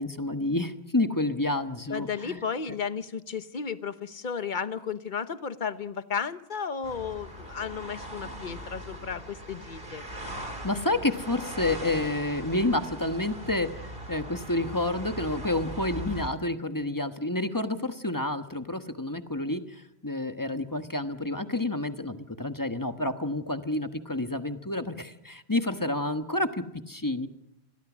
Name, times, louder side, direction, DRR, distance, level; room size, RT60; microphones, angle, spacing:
voice 1, 0.0-2.4 10.6-27.3, left 2 dB, 20° left, 8 dB, 1.2 m, -29 dB
voice 2, 1.9-10.1, left 6 dB, 50° left, 12 dB, 1.2 m, -34 dB
sound 1, 6.8-16.3, right 1 dB, 60° right, 4.7 m, -40 dB
29.5 x 22.0 x 6.2 m, 0.83 s
omnidirectional pair, 1.1 m